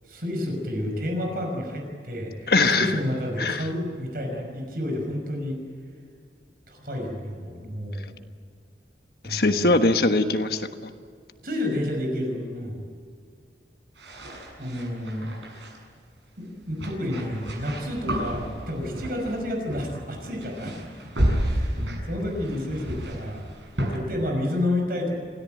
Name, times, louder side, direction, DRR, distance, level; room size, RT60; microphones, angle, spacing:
voice 1, 0.1-5.6 6.7-8.2 9.2-9.7 11.4-12.8 14.6-15.3 16.4-20.8 21.4-23.5 23.9-25.1, left 1 dB, 55° right, 2 dB, 5.8 m, -30 dB
voice 2, 2.5-3.0 3.4-3.7 9.2-10.9, left 2 dB, 55° left, 7 dB, 1.4 m, -22 dB
sound 1, 14.0-15.8 16.7-19.4 19.7-20.1 20.3-24.0, equal, 90° right, 7.2 m, -31 dB
27.5 x 17.5 x 9.2 m, 2.2 s
head